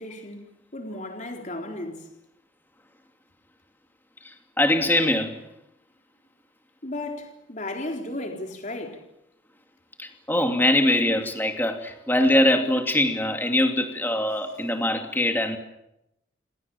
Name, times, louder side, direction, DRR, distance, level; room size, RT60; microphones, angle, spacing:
voice 1, 0.0-2.1 6.8-9.0, left 1 dB, 40° left, 3.8 m, -35 dB
voice 2, 4.2-5.4 10.0-15.6, left 1 dB, 10° left, 2.6 m, -23 dB
28.5 x 26.0 x 7.1 m
head